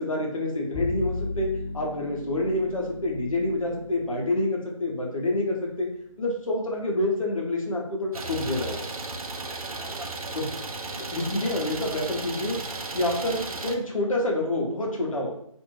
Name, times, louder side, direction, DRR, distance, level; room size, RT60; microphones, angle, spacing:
voice 1, 0.0-5.9 6.2-8.9 10.3-10.5 11.1-12.6 12.9-15.3, left 1 dB, 70° left, -1 dB, 1.0 m, -27 dB
Bowed string instrument, 0.7-7.2, left 2 dB, 15° left, 1.2 m, -38 dB
Idling, 8.1-13.7, right 3 dB, 85° right, 0.5 m, -35 dB
2.6 x 2.5 x 3.0 m, 0.69 s
figure-of-eight pair, 160°, 18 cm